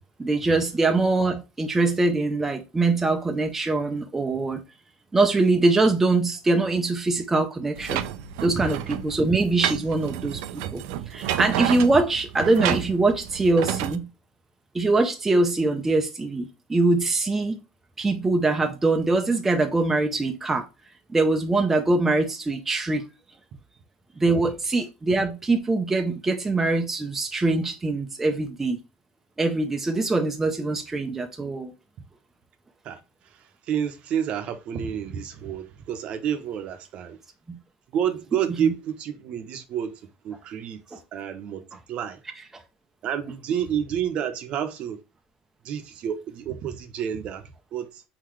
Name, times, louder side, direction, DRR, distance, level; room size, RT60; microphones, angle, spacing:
voice 1, 0.2-4.6 5.1-8.0 8.4-14.1 14.7-17.6 18.0-20.6 21.1-23.1 24.2-28.8 29.4-31.7 37.5-37.6 38.6-38.7 40.9-41.0, right 2 dB, 10° right, 0.5 m, -23 dB
sound 1, 7.8-14.0, right 11 dB, 85° right, 0.5 m, -30 dB
voice 2, 33.3-37.2 37.9-40.8 41.1-41.6 41.9-42.2 43.0-45.0 45.6-48.0, right 8 dB, 45° right, 0.7 m, -29 dB
4.3 x 3.9 x 3.0 m
cardioid pair, 150°, 3 cm